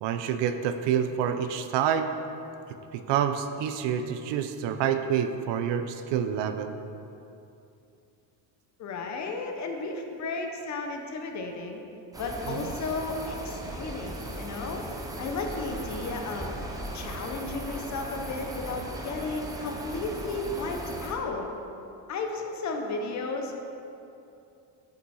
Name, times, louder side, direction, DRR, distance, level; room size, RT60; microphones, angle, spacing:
voice 1, 0.0-2.1 2.9-6.7 12.5-12.7, right 8 dB, 70° right, 9 dB, 0.6 m, -27 dB
voice 2, 8.8-11.8 12.2-14.9 15.2-16.5 16.9-21.5 22.1-23.6, left 3 dB, 40° left, 3 dB, 0.7 m, -34 dB
sound 1, 12.1-21.1, right 1 dB, 10° right, 0.4 m, -37 dB
6.7 x 5.3 x 5.5 m, 2.7 s
cardioid pair, 170°, 45 cm